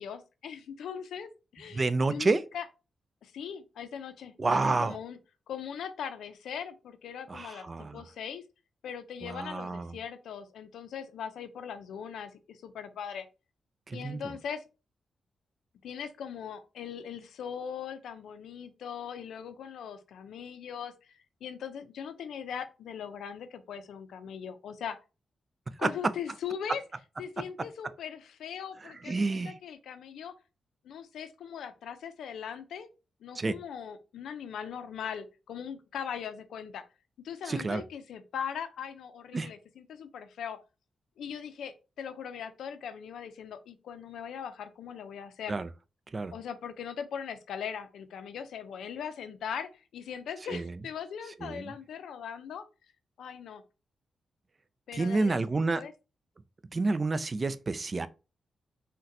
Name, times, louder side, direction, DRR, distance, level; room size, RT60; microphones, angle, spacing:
voice 1, 0.0-2.7 3.2-5.2 5.5-8.4 8.8-13.3 13.9-14.6 15.8-25.0 25.8-26.8 27.2-30.3 30.8-32.9 33.2-36.8 37.2-40.6 41.2-45.6 46.3-52.7 53.2-53.6 54.9-55.4 55.7-55.9, left 8 dB, 80° left, 0.4 m, -40 dB
voice 2, 1.7-2.4 4.4-5.0 7.3-8.0 9.2-10.0 13.9-14.3 25.8-25.9 29.1-29.5 33.4-33.6 37.5-37.8 39.3-39.5 45.5-45.7 46.1-46.3 50.5-50.7 51.4-51.7 54.9-55.8 56.7-58.1, right 3 dB, 40° right, 0.3 m, -29 dB
3.8 x 2.2 x 2.7 m
supercardioid pair, 55°, 0 cm